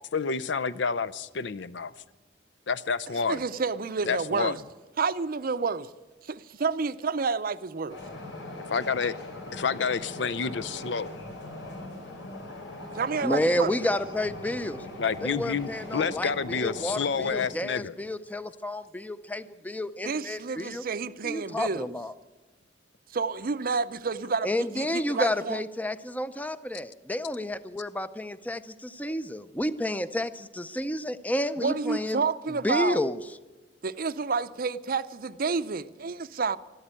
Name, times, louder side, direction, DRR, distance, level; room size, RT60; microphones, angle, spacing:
voice 1, 0.1-1.9 2.7-3.4 4.0-4.6 8.7-9.2 9.5-11.1 15.0-17.9, left 5 dB, 70° left, 0.6 m, -29 dB
voice 2, 3.3-4.6 5.0-5.9 6.2-8.0 12.9-13.8 20.0-21.9 23.1-25.6 31.6-33.1 33.8-36.6, right 4 dB, 50° right, 0.6 m, -29 dB
sound 1, 7.9-17.5, left 2 dB, 85° left, 4.4 m, -40 dB
voice 3, 13.2-14.8 15.2-20.8 21.2-22.1 24.4-32.2 32.6-33.2, left 1 dB, 10° left, 0.5 m, -30 dB
13.0 x 12.5 x 8.9 m
head